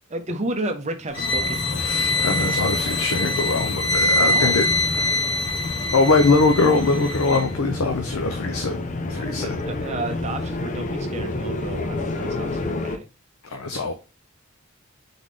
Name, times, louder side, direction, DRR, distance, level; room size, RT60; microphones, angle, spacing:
voice 1, 0.1-2.0 4.2-4.6 9.1-13.1 13.8-13.9, right 2 dB, 35° right, 6 dB, 0.7 m, -32 dB
sound 1, 1.1-7.5, left 1 dB, 60° left, 2.5 m, -24 dB
sound 2, 1.2-13.0, left 2 dB, 35° left, 0.5 m, -30 dB
voice 2, 1.8-4.6 5.9-8.8 9.1-9.6 13.4-13.9, left 3 dB, 80° left, 5 dB, 0.6 m, -22 dB
3.9 x 3.6 x 3.2 m, 0.30 s
head